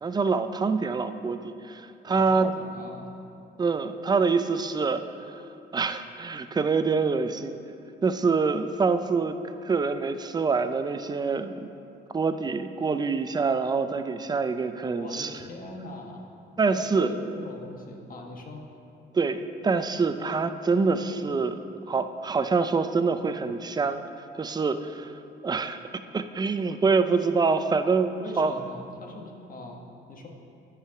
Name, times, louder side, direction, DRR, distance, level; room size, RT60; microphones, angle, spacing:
voice 1, 0.0-2.5 3.6-5.4 5.7-7.6 8.0-9.4 9.6-11.7 12.1-15.3 16.6-17.1 19.1-21.6 21.9-24.0 24.4-25.2 25.4-25.8 26.1-28.5, right 4 dB, 20° right, 10 dB, 0.4 m, -25 dB
voice 2, 2.1-3.1 14.9-16.2 16.7-18.6 28.2-30.3, left 2 dB, 45° left, 1 dB, 1.2 m, -41 dB
9.0 x 4.8 x 5.8 m, 2.6 s
cardioid pair, 90°, 20 cm